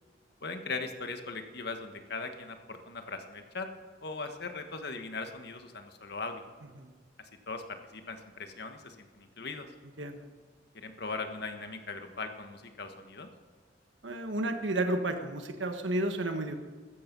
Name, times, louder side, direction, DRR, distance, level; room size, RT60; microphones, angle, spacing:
voice 1, 0.4-3.7 4.0-6.4 7.2-9.7 10.7-13.3, left 3 dB, 60° left, 6 dB, 1.5 m, -39 dB
voice 2, 14.0-16.6, right 1 dB, 85° right, 6 dB, 1.5 m, -32 dB
15.0 x 13.5 x 5.5 m, 1.5 s
head